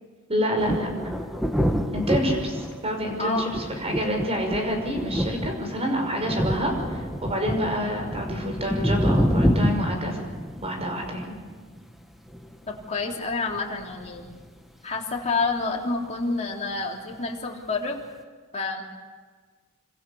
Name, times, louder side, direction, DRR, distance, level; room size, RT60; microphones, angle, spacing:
voice 1, 0.3-0.9 1.9-10.2 10.6-11.3, equal, 30° right, 3 dB, 5.6 m, -28 dB
sound 1, 0.6-11.9 12.3-12.8 13.5-13.6 13.9-14.3, equal, ahead, 1.6 m, -27 dB
voice 2, 3.2-3.6 3.9-4.0 12.7-14.3 14.8-18.0 18.5-18.8, left 3 dB, 30° left, -1 dB, 3.6 m, -28 dB
26.5 x 26.0 x 7.2 m, 1.5 s
head